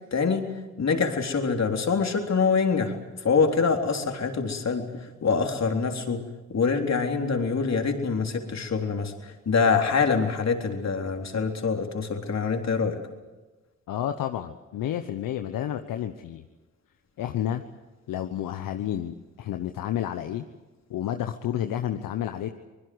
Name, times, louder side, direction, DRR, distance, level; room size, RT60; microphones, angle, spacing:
voice 1, 0.1-0.5 0.8-6.2 6.5-13.0, left 5 dB, 50° left, 4 dB, 3.8 m, -25 dB
voice 2, 13.9-16.4 17.2-17.6 18.1-20.4 20.9-22.5, left 11 dB, 75° left, 8 dB, 1.1 m, -30 dB
26.0 x 20.5 x 8.0 m, 1.2 s
supercardioid pair, 50°, 33 cm